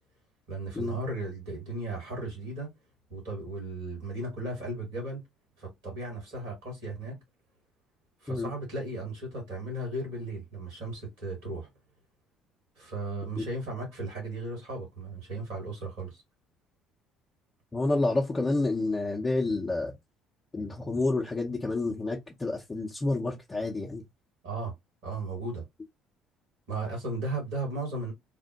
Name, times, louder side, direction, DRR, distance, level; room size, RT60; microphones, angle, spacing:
voice 1, 0.5-2.7 3.1-5.2 5.6-7.2 8.2-11.7 12.8-16.2 24.4-24.7 25.0-25.6 26.7-28.1, right 2 dB, 70° right, 2.0 m, -36 dB
voice 2, 17.7-19.9 20.5-24.0, left 2 dB, 25° left, 0.8 m, -29 dB
3.4 x 2.1 x 2.8 m
figure-of-eight pair, 55°, 0 cm